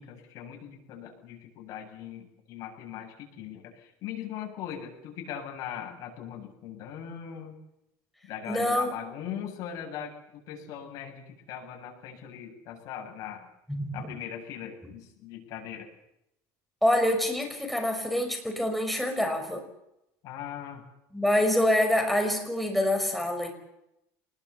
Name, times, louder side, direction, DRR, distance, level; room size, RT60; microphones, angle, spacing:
voice 1, 0.0-7.5 8.3-13.5 13.9-15.9 20.2-20.8, left 9 dB, 55° left, 1 dB, 8.0 m, -40 dB
voice 2, 8.5-8.9 13.7-13.9 16.8-19.6 21.1-23.5, left 1 dB, ahead, 3 dB, 5.5 m, -26 dB
25.5 x 20.5 x 7.3 m, 0.84 s
cardioid pair, 140°, 7 cm